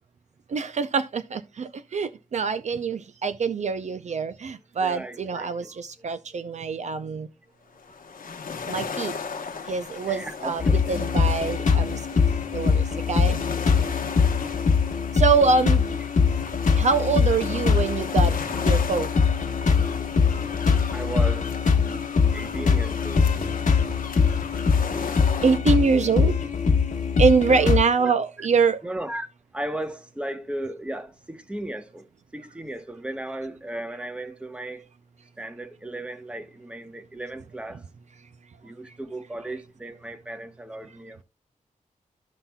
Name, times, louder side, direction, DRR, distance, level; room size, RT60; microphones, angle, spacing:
voice 1, 0.5-7.3 8.7-9.1 9.7-12.0 12.5-13.4 15.1-15.8 16.8-18.4 18.6-19.1 25.4-26.4 27.2-28.8, right 5 dB, 55° right, 0.5 m, -24 dB
voice 2, 4.8-5.7 6.0-6.1 6.6-7.2 10.0-10.8 20.9-21.7 22.3-23.4 27.5-27.7 28.0-28.1 28.8-29.3 29.5-32.1 32.3-34.9 35.4-37.9 38.6-41.2, right 1 dB, 10° right, 0.9 m, -36 dB
sound 1, 7.8-25.6, left 5 dB, 90° left, 1.0 m, -36 dB
sound 2, 10.6-27.8, left 5 dB, 65° left, 1.3 m, -22 dB
15.0 x 5.6 x 2.2 m
wide cardioid pair, 170°, 14 cm